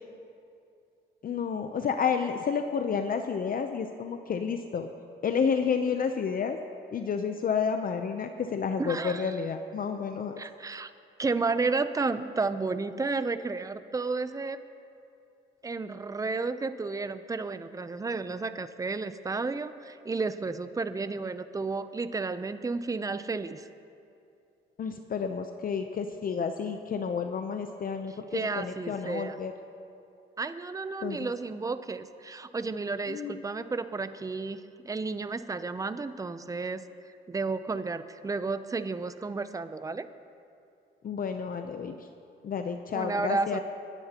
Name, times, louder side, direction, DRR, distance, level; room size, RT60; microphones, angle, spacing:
voice 1, 1.2-4.9 5.2-6.6 6.9-10.4 24.8-29.5 31.0-31.3 33.1-33.7 41.0-42.1 42.4-43.6, left 6 dB, 45° left, 6 dB, 0.7 m, -30 dB
voice 2, 8.8-9.3 10.4-10.9 11.2-14.6 15.6-23.7 28.3-29.4 30.4-36.8 37.3-40.1 42.9-43.6, right 3 dB, 15° right, 12 dB, 0.6 m, -32 dB
26.5 x 10.5 x 2.9 m, 2.6 s
cardioid pair, 90°, 20 cm